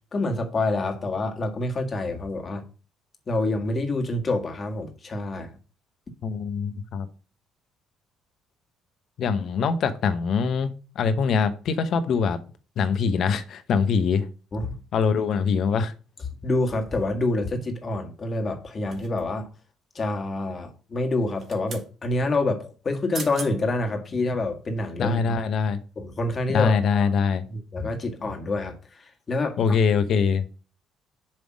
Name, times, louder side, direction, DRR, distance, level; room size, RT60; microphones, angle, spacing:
voice 1, 0.1-2.6 3.3-5.6 14.5-14.8 16.4-19.5 20.0-25.3 26.0-27.1 27.5-29.6, left 2 dB, 40° left, 1.8 m, -27 dB
voice 2, 6.2-7.1 9.2-12.4 12.8-14.3 14.9-15.9 25.0-25.8 26.5-27.4 29.6-30.5, left 5 dB, 60° left, 0.9 m, -23 dB
sound 1, 18.9-19.5 21.2-21.9 22.9-23.0 23.1-23.5 24.1-24.2, right 4 dB, 50° right, 1.6 m, -39 dB
7.4 x 3.5 x 6.2 m
hypercardioid pair, 50°, 0 cm